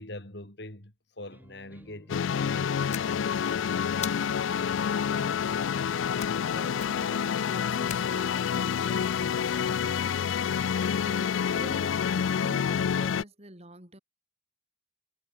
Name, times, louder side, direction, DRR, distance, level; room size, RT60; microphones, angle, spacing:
voice 1, 0.0-3.5, left 1 dB, 60° left, 4.0 m, -43 dB
sound 1, 1.3-10.6, equal, 10° right, 4.0 m, -57 dB
sound 2, 2.1-13.2, left 7 dB, 80° left, 0.4 m, -28 dB
sound 3, 2.9-3.5 4.0-4.6 6.2-6.5 6.8-7.2 7.9-8.6, left 9 dB, 35° left, 0.8 m, -41 dB
voice 2, 4.1-14.0, right 1 dB, 30° right, 4.3 m, -49 dB
head